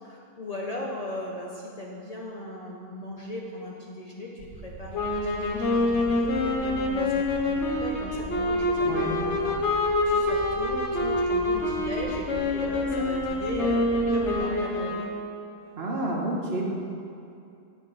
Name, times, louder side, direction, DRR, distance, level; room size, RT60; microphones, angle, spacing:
voice 1, 0.0-15.0, left 1 dB, 40° left, -3 dB, 0.6 m, -38 dB
sound 1, 4.4-14.4, right 2 dB, 85° right, 1.2 m, -42 dB
sound 2, 4.9-15.3, left 2 dB, 70° left, 1.2 m, -26 dB
voice 2, 8.8-9.2 15.8-16.8, right 2 dB, 55° right, -1 dB, 1.2 m, -29 dB
9.0 x 5.9 x 4.0 m, 2.6 s
omnidirectional pair, 1.2 m